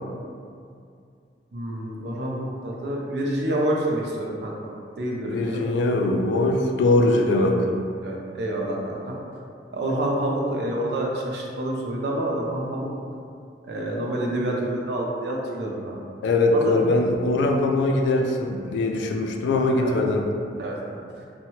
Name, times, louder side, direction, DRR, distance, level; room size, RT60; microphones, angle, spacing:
voice 1, 1.5-4.5 5.0-5.6 8.0-9.2 9.7-12.9 13.6-16.0 16.5-16.8 19.7-20.0 20.6-21.2, right 1 dB, 70° right, -1 dB, 0.4 m, -28 dB
voice 2, 5.2-7.6 16.2-20.3, left 2 dB, 85° left, 2 dB, 0.3 m, -21 dB
2.7 x 2.1 x 2.9 m, 2.4 s
head